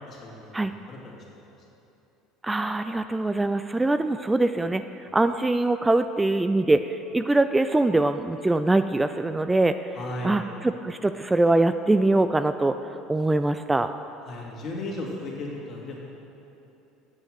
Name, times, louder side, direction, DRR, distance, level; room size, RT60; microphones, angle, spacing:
voice 1, 0.1-1.1 9.9-10.4 14.2-16.1, left 2 dB, 45° left, -3 dB, 2.6 m, -36 dB
voice 2, 2.4-4.8 5.1-9.7 10.2-12.7 13.1-13.9, right 2 dB, 15° right, 10 dB, 0.3 m, -23 dB
8.3 x 7.7 x 6.4 m, 2.9 s
hypercardioid pair, 75°, 0 cm